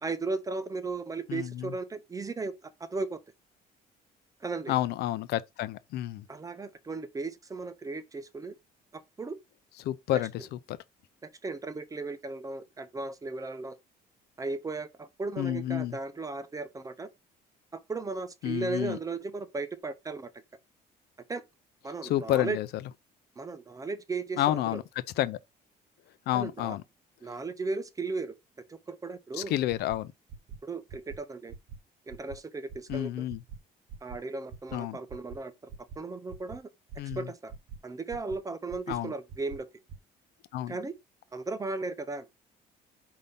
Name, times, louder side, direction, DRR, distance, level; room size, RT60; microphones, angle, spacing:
voice 1, 0.0-3.2 4.4-4.7 6.3-8.5 8.9-9.4 10.1-10.2 11.2-13.8 14.4-17.1 17.7-20.4 21.3-21.4 21.8-22.6 23.4-24.8 26.3-26.8 27.2-28.3 28.7-29.5 30.6-31.5 32.1-33.3 34.0-35.7 36.0-36.7 37.0-37.5 37.8-39.7 40.7-41.0 41.3-42.3, right 3 dB, 20° right, 0.6 m, -36 dB
voice 2, 1.3-1.7 4.7-6.2 9.8-10.8 15.4-16.0 18.4-19.0 22.0-22.7 24.4-24.8 25.2-25.4 26.3-26.8 29.3-30.1 32.9-33.4 34.7-35.0 37.0-37.3 38.9-39.1 40.5-40.8, left 13 dB, 75° left, 0.5 m, -30 dB
sound 1, 29.7-30.0 30.3-30.6 30.9-31.2 31.5-31.8 32.1-32.4 32.7-33.0 33.3-33.6 33.9-34.2 34.5-34.8 35.1-35.4 35.7-36.0 36.3-36.6 36.9-37.2 37.5-37.8 38.1-38.4 38.7-39.0 39.3-39.6 39.9-40.0, right 5 dB, 75° right, 1.0 m, -43 dB
5.3 x 2.7 x 3.4 m
cardioid pair, 110°, 17 cm